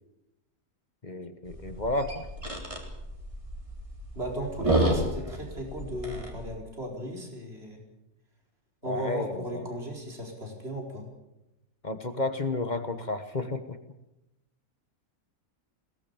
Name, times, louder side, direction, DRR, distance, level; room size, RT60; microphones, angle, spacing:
voice 1, 1.0-2.3 8.9-9.7 11.8-13.8, left 2 dB, 30° left, 9 dB, 1.2 m, -32 dB
sound 1, 1.5-6.5, right 1 dB, 20° right, 3.5 m, -31 dB
voice 2, 4.1-7.8 8.8-11.1, equal, 40° right, 1 dB, 4.7 m, -36 dB
21.5 x 18.0 x 7.1 m, 0.91 s
omnidirectional pair, 1.6 m